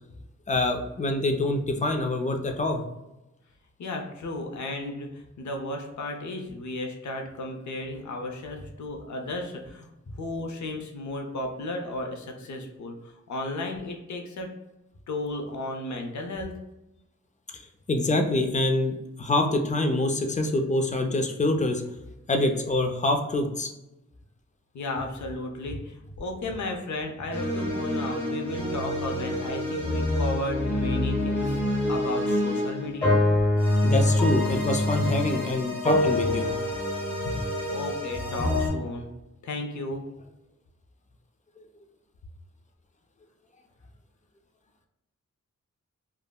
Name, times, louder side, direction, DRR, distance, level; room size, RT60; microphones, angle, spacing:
voice 1, 0.5-2.8 17.5-17.6 17.9-21.8 22.3-23.7 33.8-36.6 37.2-37.5, left 2 dB, 25° left, 4 dB, 0.3 m, -25 dB
voice 2, 3.8-9.9 10.2-14.5 15.1-16.6 24.7-33.2 37.7-39.1 39.4-40.1, left 1 dB, 70° left, 3 dB, 0.6 m, -34 dB
sound 1, 27.3-38.7, left 1 dB, 5° left, 1.0 m, -26 dB
3.5 x 2.0 x 2.2 m, 0.94 s
wide cardioid pair, 125°, 30 cm